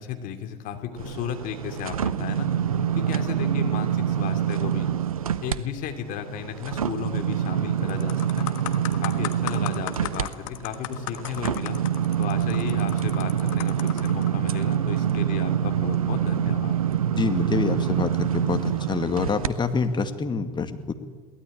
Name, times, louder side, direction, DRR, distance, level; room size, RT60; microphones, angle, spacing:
voice 1, 0.0-2.5 2.9-4.9 5.4-8.5 9.0-11.8 12.2-16.8, left 9 dB, 50° left, 5 dB, 2.8 m, -34 dB
sound 1, 1.0-5.6 6.0-19.5 20.0-20.1, right 9 dB, 80° right, 0.7 m, -26 dB
sound 2, 7.3-7.5 7.9-14.3 15.0-15.2, left 15 dB, 65° left, 1.4 m, -37 dB
voice 2, 17.2-20.9, left 5 dB, 25° left, 7 dB, 2.1 m, -26 dB
22.5 x 17.0 x 8.7 m, 1.5 s
figure-of-eight pair, 70°, 18 cm